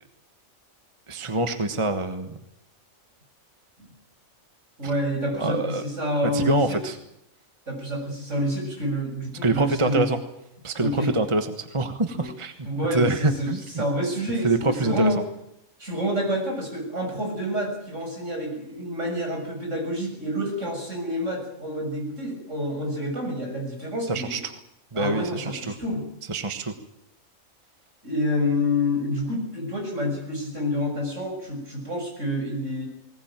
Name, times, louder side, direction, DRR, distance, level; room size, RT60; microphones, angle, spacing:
voice 1, 1.1-2.4 5.3-5.8 6.3-7.0 9.4-10.2 10.6-12.5 12.9-13.8 14.4-15.1 24.1-24.5 24.9-25.8 26.3-26.7, right 2 dB, 25° right, 8 dB, 1.3 m, -25 dB
voice 2, 4.8-6.8 7.7-10.1 10.8-11.2 12.1-12.3 12.6-15.2 15.8-24.4 24.9-26.0 28.0-32.9, equal, 60° right, 1 dB, 7.2 m, -28 dB
19.5 x 19.5 x 9.0 m, 0.82 s
omnidirectional pair, 1.4 m